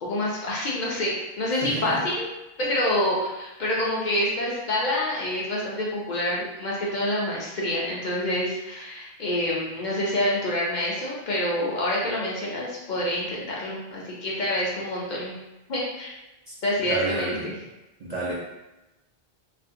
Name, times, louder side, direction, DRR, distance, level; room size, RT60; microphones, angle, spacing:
voice 1, 0.0-2.3 2.6-15.4 15.7-16.1 16.6-17.5, left 1 dB, 55° left, -5 dB, 0.6 m, -27 dB
voice 2, 1.6-2.1 16.5-16.6 16.8-17.5 18.0-18.3, right 2 dB, 55° right, -7 dB, 0.5 m, -30 dB
2.4 x 2.1 x 2.5 m, 1.0 s
omnidirectional pair, 1.0 m